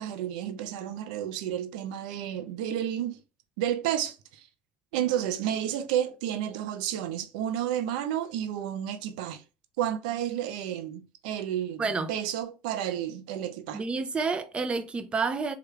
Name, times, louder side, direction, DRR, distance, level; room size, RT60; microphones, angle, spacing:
voice 1, 0.0-3.2 3.6-4.5 4.9-9.4 9.8-13.8, right 10 dB, 80° right, 0.5 m, -31 dB
voice 2, 11.8-12.1 13.7-15.5, right 4 dB, 25° right, 0.5 m, -29 dB
3.3 x 2.3 x 3.1 m
supercardioid pair, 100°, 4 cm